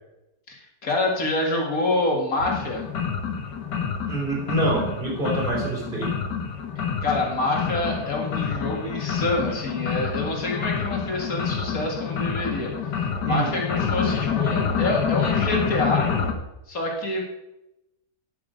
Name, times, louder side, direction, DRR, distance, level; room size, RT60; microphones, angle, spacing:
voice 1, 0.5-2.8 7.0-12.7 13.2-16.1 16.7-17.2, left 2 dB, 55° left, 0 dB, 2.4 m, -26 dB
sound 1, 2.4-16.3, left 6 dB, 85° left, 1.7 m, -27 dB
voice 2, 4.1-6.2 13.2-13.5, right 2 dB, 30° right, -3 dB, 3.2 m, -26 dB
9.8 x 8.4 x 5.2 m, 0.91 s
omnidirectional pair, 1.8 m